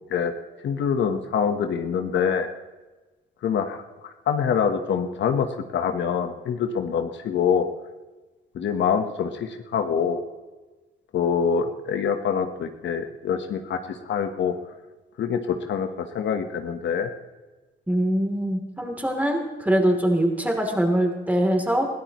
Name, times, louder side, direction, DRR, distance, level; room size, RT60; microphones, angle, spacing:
voice 1, 0.6-2.5 3.4-3.8 4.3-5.5 5.7-7.7 8.5-10.2 11.1-14.5 15.2-17.1, left 7 dB, 65° left, 7 dB, 1.2 m, -25 dB
voice 2, 17.9-21.9, right 1 dB, 10° right, 2 dB, 3.1 m, -23 dB
21.5 x 14.5 x 3.1 m, 1.2 s
cardioid pair, 90°, 20 cm